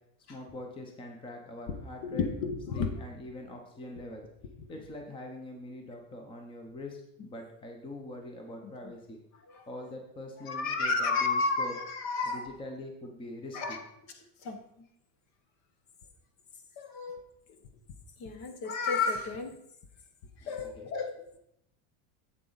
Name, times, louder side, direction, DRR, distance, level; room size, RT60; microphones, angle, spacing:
voice 1, 0.3-2.3 2.7-4.2 4.7-9.2 9.7-11.7 12.3-13.8 20.4-20.9, left 1 dB, 15° left, 3 dB, 0.8 m, -43 dB
voice 2, 2.0-2.9 8.6-8.7 9.5-9.6 10.5-12.5 13.5-13.8 14.4-14.9 16.8-17.2 18.2-19.6 20.4-21.1, left 4 dB, 40° left, 7 dB, 1.0 m, -31 dB
7.7 x 7.3 x 4.0 m, 0.76 s
supercardioid pair, 160°, 40 cm